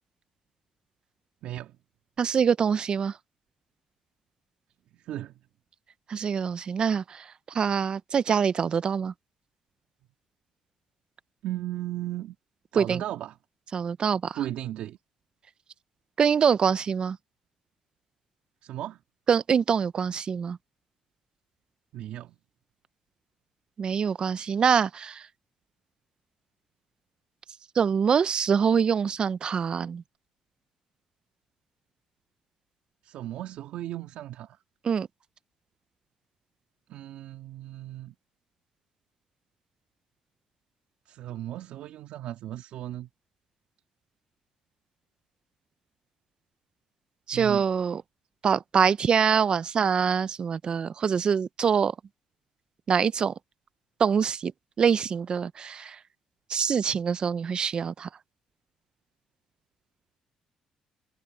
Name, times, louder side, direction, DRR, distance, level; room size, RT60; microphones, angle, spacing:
voice 1, 1.4-1.8 4.9-5.3 11.4-12.4 12.7-13.4 14.3-15.0 18.6-19.0 21.9-22.4 33.0-34.6 36.9-38.2 41.1-43.1 47.3-47.7, right 13 dB, 75° right, 2.6 m, -36 dB
voice 2, 2.2-3.1 6.1-7.2 7.5-9.1 12.8-13.0 13.7-14.4 16.2-17.2 19.3-20.6 23.8-25.2 27.8-30.0 34.8-35.1 47.3-48.0 48.4-51.9 52.9-53.3 54.0-54.5 54.8-56.0 56.5-58.1, right 7 dB, 45° right, 0.9 m, -24 dB
supercardioid pair, 80°, 2 cm